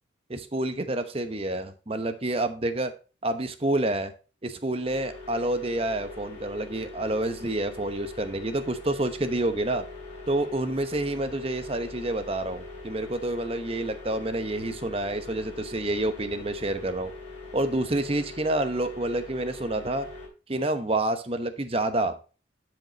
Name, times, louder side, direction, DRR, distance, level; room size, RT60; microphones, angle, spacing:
voice 1, 0.3-2.9 3.2-4.1 4.4-9.8 10.3-17.1 17.5-20.1 20.5-22.2, right 1 dB, 30° right, 9 dB, 0.9 m, -28 dB
sound 1, 4.8-20.3, left 3 dB, 30° left, 3.5 m, -42 dB
11.0 x 5.1 x 4.0 m, 0.34 s
head